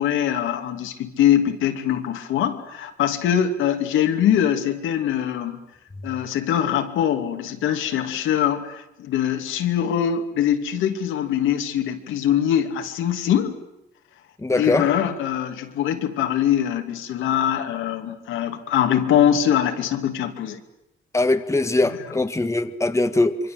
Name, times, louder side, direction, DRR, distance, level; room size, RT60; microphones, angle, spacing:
voice 1, 0.0-5.6 6.0-13.5 14.5-20.6 21.8-21.9, left 10 dB, 85° left, 2.8 m, -22 dB
voice 2, 14.4-14.9 21.1-23.4, left 2 dB, 15° left, 1.6 m, -21 dB
26.5 x 24.0 x 7.9 m
cardioid pair, 90°, 20 cm